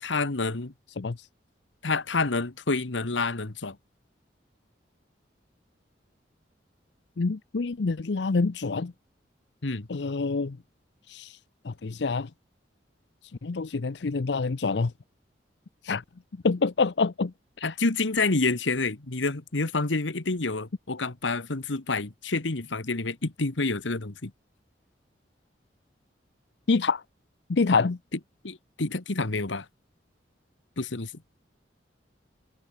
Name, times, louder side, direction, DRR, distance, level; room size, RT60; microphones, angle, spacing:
voice 1, 0.0-0.7 1.8-3.8 9.6-9.9 17.6-24.3 28.4-29.6 30.8-31.1, left 3 dB, 90° left, 1.5 m, -28 dB
voice 2, 1.0-1.3 7.2-8.9 9.9-10.6 11.1-11.4 11.6-12.3 13.4-14.9 15.8-16.0 16.4-17.7 26.7-27.0 27.5-28.0, left 4 dB, 70° left, 0.6 m, -26 dB
head